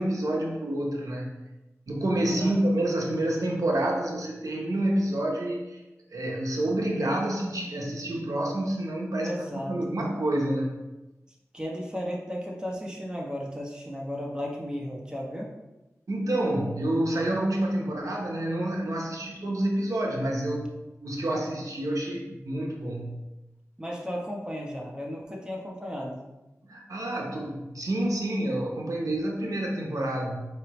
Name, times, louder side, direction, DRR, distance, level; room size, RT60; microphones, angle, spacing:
voice 1, 0.0-1.4 1.9-5.8 6.1-9.3 9.7-10.8 16.1-20.7 21.0-23.1 26.7-30.5, right 1 dB, 85° right, -1 dB, 0.8 m, -28 dB
voice 2, 9.2-9.8 11.5-15.5 23.8-26.2, equal, 15° right, -2 dB, 1.0 m, -34 dB
4.5 x 3.2 x 3.0 m, 1.0 s
wide cardioid pair, 40°, 6 cm